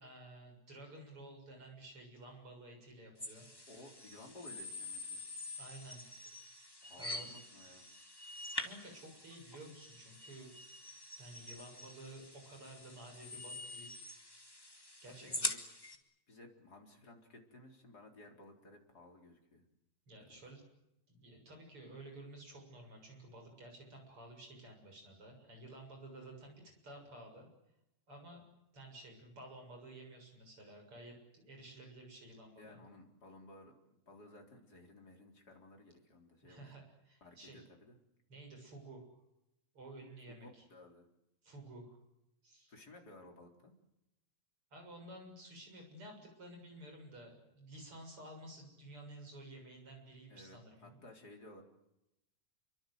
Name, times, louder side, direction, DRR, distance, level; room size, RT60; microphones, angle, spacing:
voice 1, 0.0-3.5 5.6-6.0 7.0-7.3 8.6-10.5 11.2-14.0 15.0-15.5 20.1-20.6 21.1-27.5 28.1-28.4 28.7-32.8 36.4-37.6 38.3-39.2 39.7-40.6 41.4-42.0 42.4-42.7 44.7-51.0, right 1 dB, 45° right, 3 dB, 8.0 m, -53 dB
sound 1, 3.2-16.0, left 2 dB, 10° left, 2.1 m, -45 dB
voice 2, 3.7-5.3 6.8-7.8 15.1-15.6 16.3-19.6 20.3-20.4 32.6-36.7 37.2-38.0 40.3-41.1 42.7-43.8 50.3-51.6, left 2 dB, 30° left, 2 dB, 4.4 m, -57 dB
28.0 x 24.5 x 7.9 m, 0.89 s
omnidirectional pair, 3.4 m